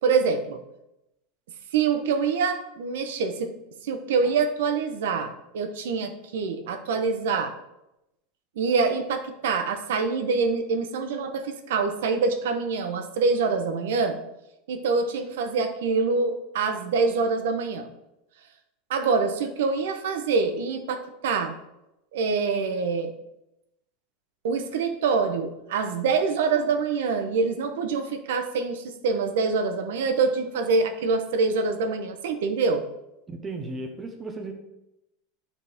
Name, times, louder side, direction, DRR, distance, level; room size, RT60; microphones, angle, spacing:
voice 1, 0.0-0.6 1.7-3.5 3.8-7.5 8.6-14.2 14.7-17.9 18.9-21.5 22.1-23.1 24.4-32.8, right 4 dB, 90° right, 7 dB, 0.8 m, -25 dB
voice 2, 33.3-34.5, right 2 dB, 15° right, 4 dB, 0.7 m, -35 dB
9.2 x 4.2 x 3.5 m, 0.89 s
supercardioid pair, 170°, 0 cm